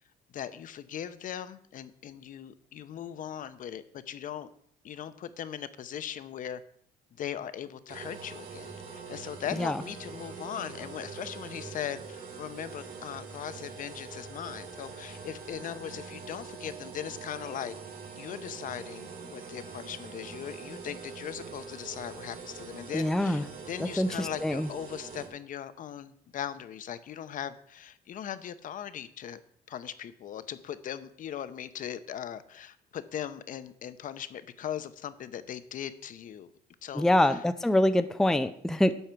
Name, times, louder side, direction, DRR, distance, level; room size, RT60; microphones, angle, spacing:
voice 1, 0.3-4.5 4.8-6.6 7.2-17.7 18.2-29.4 29.7-36.5 36.8-37.4 38.8-38.9, left 9 dB, 50° left, 13 dB, 0.8 m, -39 dB
sound 1, 7.9-25.3, right 5 dB, 55° right, 2.8 m, -44 dB
voice 2, 22.9-23.4 23.8-24.7 36.9-38.9, left 1 dB, 5° left, 10 dB, 0.5 m, -25 dB
11.0 x 7.3 x 4.5 m, 0.65 s
cardioid pair, 110°, 17 cm